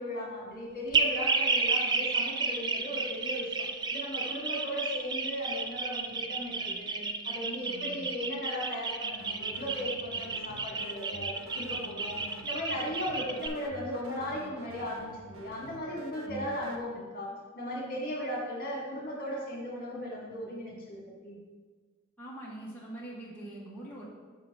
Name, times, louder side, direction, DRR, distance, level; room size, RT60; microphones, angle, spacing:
voice 1, 0.0-21.4, equal, 40° left, -3 dB, 1.7 m, -37 dB
sound 1, 0.9-13.5, right 4 dB, 20° right, 0.3 m, -31 dB
voice 2, 7.6-8.1 16.3-16.6 22.2-24.0, right 1 dB, 10° left, -8 dB, 1.1 m, -43 dB
sound 2, 9.2-16.8, right 1 dB, 65° right, 0.6 m, -48 dB
6.3 x 3.9 x 5.9 m, 1.4 s
head